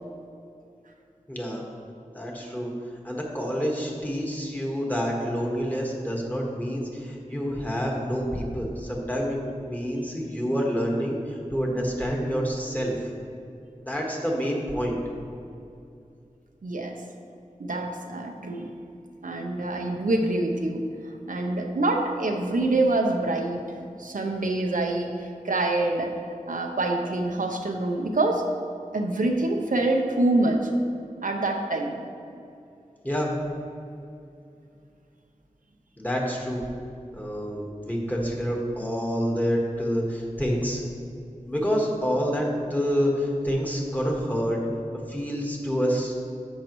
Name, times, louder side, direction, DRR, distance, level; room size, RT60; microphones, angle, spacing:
voice 1, 1.3-1.6 2.1-2.7 3.0-9.4 9.7-13.1 13.8-15.0 33.0-33.3 36.0-36.6 37.1-40.8 41.5-44.6 45.1-46.1, equal, 10° left, -2 dB, 1.5 m, -27 dB
voice 2, 16.6-17.0 17.6-18.7 19.2-23.6 24.0-26.2 26.5-28.5 28.9-30.7 31.2-32.0, right 2 dB, 85° right, 2 dB, 0.7 m, -26 dB
10.5 x 6.4 x 3.1 m, 2.5 s
wide cardioid pair, 55°, 13 cm